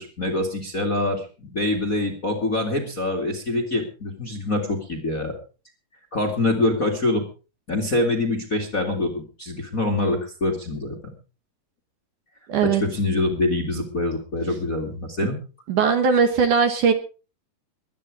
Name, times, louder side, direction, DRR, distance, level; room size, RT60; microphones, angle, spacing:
voice 1, 0.0-5.3 6.1-7.2 7.7-11.0 12.6-15.4, left 2 dB, 30° left, 5 dB, 1.9 m, -25 dB
voice 2, 12.5-12.8 15.2-15.3 15.7-16.9, right 6 dB, 60° right, 8 dB, 2.5 m, -19 dB
22.5 x 9.5 x 4.9 m, 0.35 s
omnidirectional pair, 4.6 m